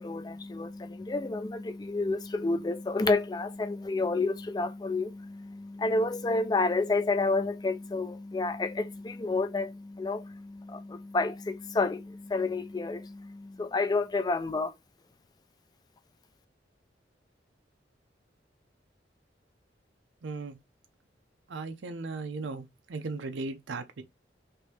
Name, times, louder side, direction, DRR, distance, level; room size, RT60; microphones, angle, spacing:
voice 1, 0.0-14.7, left 3 dB, 20° left, 0.3 m, -30 dB
voice 2, 20.2-20.6 21.5-24.0, right 3 dB, 90° right, 0.5 m, -37 dB
3.0 x 2.6 x 3.2 m
head